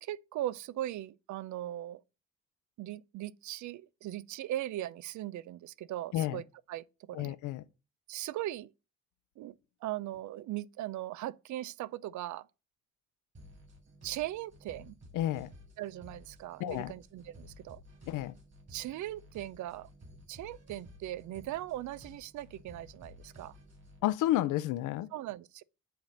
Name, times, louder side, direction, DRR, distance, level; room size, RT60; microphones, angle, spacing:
voice 1, 0.0-2.0 2.8-7.4 8.1-8.7 9.4-9.5 9.8-12.5 14.0-15.0 15.8-17.8 18.7-19.9 20.3-23.6 25.1-25.6, right 14 dB, 70° right, 0.5 m, -39 dB
voice 2, 7.1-7.6 15.1-15.5 16.6-16.9 18.1-18.3 24.0-25.1, left 14 dB, 85° left, 0.5 m, -31 dB
sound 1, 13.3-24.0, left 1 dB, 40° right, 3.9 m, -54 dB
7.9 x 3.5 x 6.3 m
cardioid pair, 90°, 30 cm